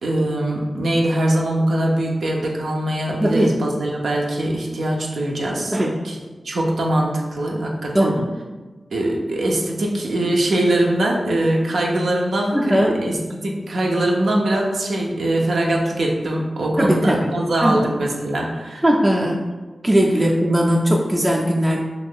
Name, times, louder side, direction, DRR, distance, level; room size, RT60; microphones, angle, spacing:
voice 1, 0.0-5.8 6.0-6.2 6.4-8.2 8.9-18.8, right 1 dB, 85° right, -1 dB, 0.5 m, -22 dB
voice 2, 3.2-3.6 5.7-5.9 7.9-8.3 12.5-13.0 16.8-17.3 17.6-17.9 18.8-19.5 19.8-21.8, equal, 20° right, -2 dB, 0.4 m, -18 dB
2.6 x 2.4 x 3.5 m, 1.3 s
cardioid pair, 40°, 0 cm